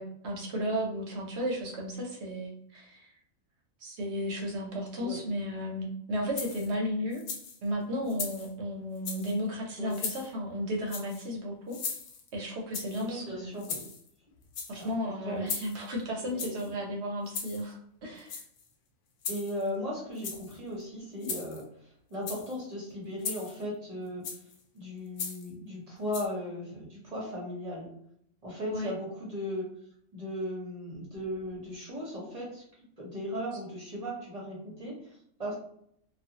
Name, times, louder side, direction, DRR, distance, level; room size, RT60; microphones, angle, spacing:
voice 1, 0.0-3.1 3.8-7.2 7.6-11.8 12.3-13.6 14.7-18.4 28.7-28.9, equal, 60° right, -1 dB, 0.9 m, -34 dB
sound 1, 6.4-6.7 7.1-7.6 8.1-8.5 9.0-9.4 9.9-10.3 10.9-11.3 11.7-12.3 12.7-13.1 13.6-14.1 14.4-14.9 15.5-15.9 16.4-16.7 17.3-17.7 18.2-18.7 19.2-19.7 20.1-20.6 21.2-21.6 22.1-22.5 23.2-23.6 24.2-24.6 25.2-25.5 26.1-26.3, left 5 dB, 90° left, 1.0 m, -38 dB
voice 2, 12.9-13.8 14.8-15.5 16.2-16.7 19.3-24.3 24.7-27.9 28.4-29.7 30.1-32.6 33.0-35.5, equal, 35° right, -4 dB, 0.8 m, -37 dB
2.4 x 2.3 x 2.8 m, 0.68 s
omnidirectional pair, 1.4 m